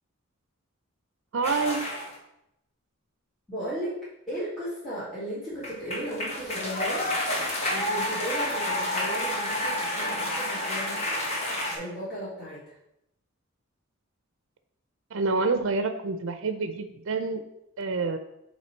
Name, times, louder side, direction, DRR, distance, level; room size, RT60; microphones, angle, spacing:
voice 1, 1.3-1.8 15.1-17.4 17.8-18.2, right 4 dB, 65° right, 8 dB, 0.5 m, -27 dB
sound 1, 1.4-2.2 5.5-11.8, left 1 dB, 30° left, 1.3 m, -29 dB
voice 2, 3.5-4.0 4.3-7.0 7.7-11.1 11.7-12.7, right 1 dB, ahead, -13 dB, 1.9 m, -35 dB
8.0 x 3.1 x 4.5 m, 0.83 s
head